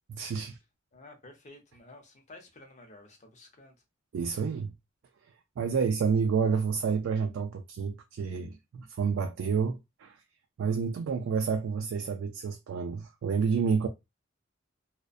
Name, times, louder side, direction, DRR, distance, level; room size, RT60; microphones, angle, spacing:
voice 1, 0.1-0.6 4.1-4.7 5.6-10.2 10.6-13.9, right 5 dB, 80° right, 0.3 m, -29 dB
voice 2, 0.9-3.8, left 2 dB, 35° left, 0.6 m, -52 dB
2.5 x 2.1 x 2.3 m
head